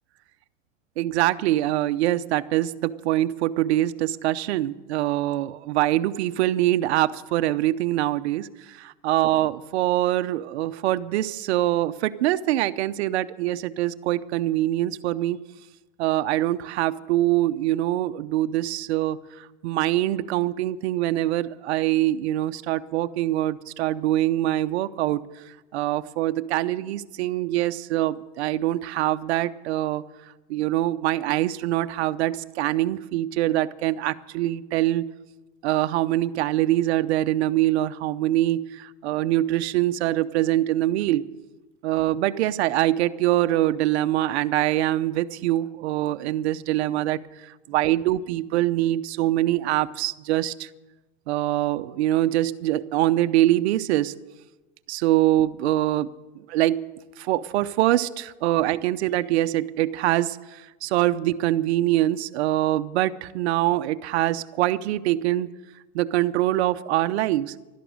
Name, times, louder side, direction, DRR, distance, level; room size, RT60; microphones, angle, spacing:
voice 1, 1.0-15.4 16.0-25.2 25.7-30.0 30.5-35.1 35.6-41.3 41.8-47.2 47.7-50.7 51.3-54.1 54.9-56.1 56.5-56.8 57.2-65.5 65.9-67.5, right 14 dB, 60° right, 10 dB, 0.8 m, -24 dB
12.5 x 11.0 x 9.4 m, 1.1 s
supercardioid pair, 160°, 37 cm